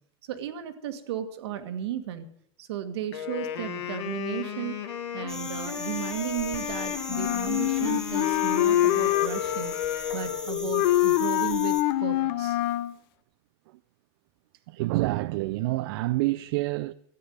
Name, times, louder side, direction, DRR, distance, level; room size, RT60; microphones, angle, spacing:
voice 1, 0.3-2.3 2.6-4.8 5.1-9.7 10.1-12.6, right 10 dB, 75° right, 1.8 m, -34 dB
Wind instrument woodwind instrument, 3.1-10.7, left 10 dB, 85° left, 2.2 m, -35 dB
sound 1, 5.3-11.8, left 1 dB, 5° left, 1.3 m, -39 dB
Wind instrument woodwind instrument 2, 7.1-12.9, left 14 dB, 55° left, 0.9 m, -25 dB
voice 2, 14.7-16.9, right 19 dB, 60° right, 0.4 m, -27 dB
13.5 x 9.3 x 7.8 m
supercardioid pair, 145°, 14 cm